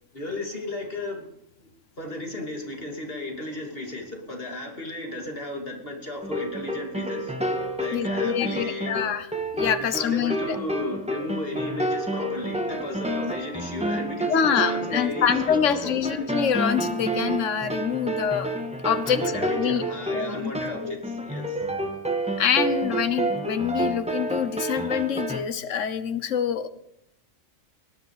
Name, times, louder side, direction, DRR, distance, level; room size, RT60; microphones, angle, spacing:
voice 1, 0.1-1.3 1.6-1.7 2.0-7.3 7.8-8.9 9.9-16.2 19.0-21.6, left 1 dB, 45° left, 1 dB, 3.2 m, -34 dB
sound 1, 6.2-25.4, right 1 dB, 5° right, 1.6 m, -29 dB
voice 2, 7.9-9.3 9.5-10.6 14.3-18.5 18.8-19.2 19.6-19.8 20.1-20.5 20.8-21.0 22.4-26.7, left 8 dB, 65° left, 11 dB, 1.4 m, -25 dB
20.0 x 10.5 x 5.0 m, 0.74 s
omnidirectional pair, 1.4 m